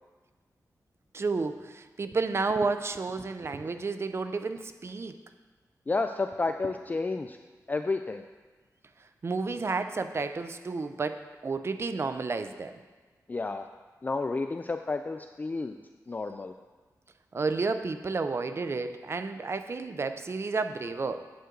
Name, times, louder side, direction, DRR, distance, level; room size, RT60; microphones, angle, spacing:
voice 1, 1.1-5.2 9.2-12.8 17.3-21.2, right 4 dB, 40° right, 9 dB, 0.5 m, -31 dB
voice 2, 5.9-7.4 7.7-8.2 13.3-13.7 14.0-15.8 16.1-16.5, left 3 dB, 25° left, 7 dB, 0.3 m, -31 dB
9.4 x 7.9 x 3.9 m, 1.3 s
wide cardioid pair, 95°, 7 cm